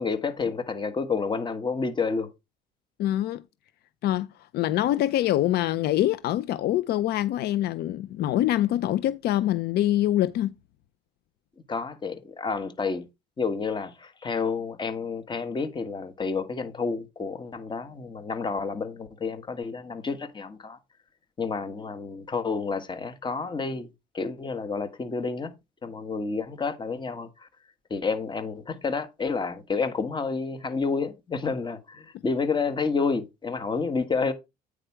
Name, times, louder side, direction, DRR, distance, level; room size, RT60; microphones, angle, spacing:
voice 1, 0.0-2.3 11.7-13.1 13.4-20.8 21.4-23.9 24.1-25.5 25.8-27.5 27.9-34.3, left 4 dB, 25° left, 1.5 m, -30 dB
voice 2, 3.0-3.4 4.0-10.5, left 13 dB, 70° left, 0.5 m, -25 dB
9.1 x 4.9 x 4.4 m
cardioid pair, 110°, 17 cm